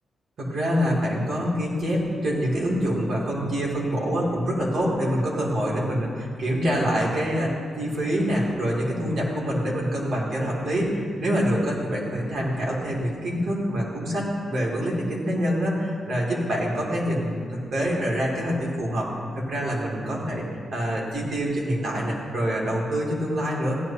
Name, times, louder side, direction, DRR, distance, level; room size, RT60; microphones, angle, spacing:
voice 1, 0.4-19.1 19.3-23.8, equal, 55° right, -4 dB, 2.8 m, -26 dB
15.5 x 11.0 x 2.9 m, 2.2 s
wide cardioid pair, 160°, 0 cm